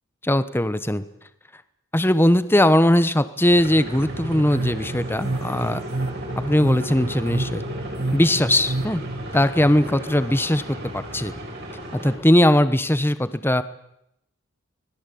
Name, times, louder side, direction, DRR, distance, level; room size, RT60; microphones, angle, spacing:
voice 1, 0.2-1.0 1.9-5.8 6.3-7.6 8.1-9.0 9.3-11.3 11.9-13.6, left 1 dB, 10° left, 13 dB, 1.1 m, -19 dB
sound 1, 3.5-12.2, equal, 50° right, 6.8 m, -34 dB
sound 2, 4.0-9.2, right 2 dB, 70° right, 1.4 m, -30 dB
25.5 x 20.5 x 8.5 m, 0.81 s
head